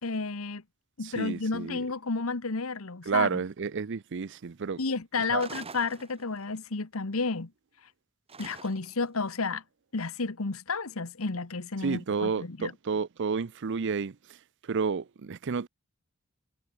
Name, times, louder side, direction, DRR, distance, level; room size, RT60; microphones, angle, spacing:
voice 1, 0.0-0.6 1.0-3.3 4.8-7.5 8.4-9.6 9.9-12.7, left 4 dB, 80° left, 1.3 m, -31 dB
voice 2, 1.0-1.9 3.1-4.8 5.3-5.5 11.8-14.2 14.6-15.7, right 5 dB, 60° right, 0.6 m, -30 dB
sound 1, 5.4-6.6 8.3-9.1, right 4 dB, 30° right, 2.3 m, -45 dB
head